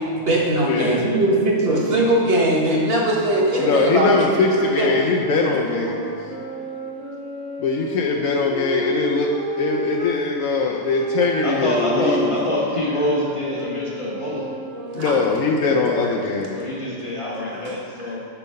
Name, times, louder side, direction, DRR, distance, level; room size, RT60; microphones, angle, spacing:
voice 1, 0.0-5.2 5.7-6.0 14.9-15.1 15.9-16.1 17.5-17.6, right 1 dB, 50° right, -3 dB, 1.4 m, -20 dB
voice 2, 0.7-1.0 3.6-6.1 7.6-12.3 14.9-16.6, left 4 dB, 80° left, -1 dB, 1.0 m, -21 dB
sound 1, 4.7-10.2 10.9-16.4, equal, 50° left, 1.5 m, -32 dB
voice 3, 11.4-14.5 16.5-18.2, left 1 dB, 25° left, -4 dB, 1.3 m, -25 dB
6.9 x 4.6 x 5.5 m, 2.8 s
omnidirectional pair, 1.4 m